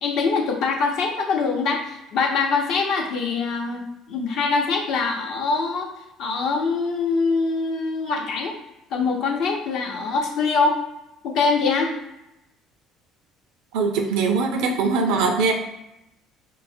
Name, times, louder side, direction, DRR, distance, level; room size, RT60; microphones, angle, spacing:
voice 1, 0.0-5.9 6.2-8.6 8.9-10.8 11.2-11.9, left 4 dB, 60° left, 1 dB, 0.6 m, -23 dB
voice 2, 13.7-15.5, right 4 dB, 70° right, 4 dB, 0.5 m, -21 dB
4.5 x 2.0 x 2.6 m, 0.89 s
hypercardioid pair, 60°, 0 cm